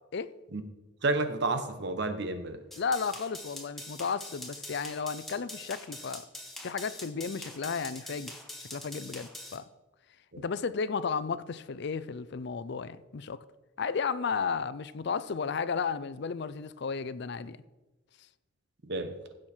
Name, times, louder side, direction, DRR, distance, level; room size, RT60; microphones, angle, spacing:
voice 1, 1.0-2.6 10.3-10.4 18.8-19.2, right 2 dB, 60° right, 1.1 m, -30 dB
sound 1, 2.7-9.6, left 1 dB, ahead, 1.4 m, -44 dB
voice 2, 2.8-6.3 6.6-8.4 8.7-9.7 10.4-13.4 13.8-17.6, left 5 dB, 60° left, 0.5 m, -33 dB
15.5 x 6.4 x 4.4 m
head